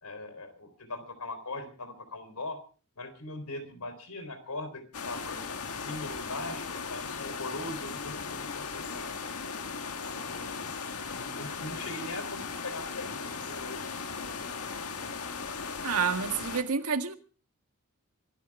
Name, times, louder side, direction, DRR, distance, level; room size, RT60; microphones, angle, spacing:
voice 1, 0.0-2.6 3.0-9.4 10.3-10.7 11.1-14.1, left 2 dB, 90° left, 3.9 m, -41 dB
sound 1, 4.9-16.6, left 5 dB, 75° left, 1.7 m, -37 dB
voice 2, 15.8-17.1, right 6 dB, 80° right, 1.7 m, -29 dB
25.0 x 12.5 x 3.6 m
head